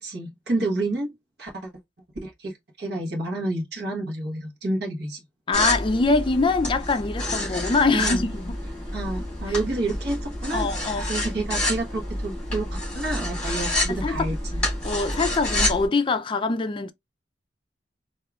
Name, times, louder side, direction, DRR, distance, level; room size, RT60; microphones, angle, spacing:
voice 1, 0.0-1.1 1.4-1.7 2.2-5.2 7.9-8.2 8.9-10.7 11.1-12.7 12.9-14.6, right 2 dB, 60° right, 1.2 m, -29 dB
voice 2, 5.5-8.6 9.5-9.6 10.5-11.0 13.9-14.3 14.8-16.9, left 3 dB, 30° left, 0.4 m, -24 dB
sound 1, 5.5-15.9, left 1 dB, 5° left, 2.8 m, -28 dB
4.6 x 2.7 x 2.4 m
head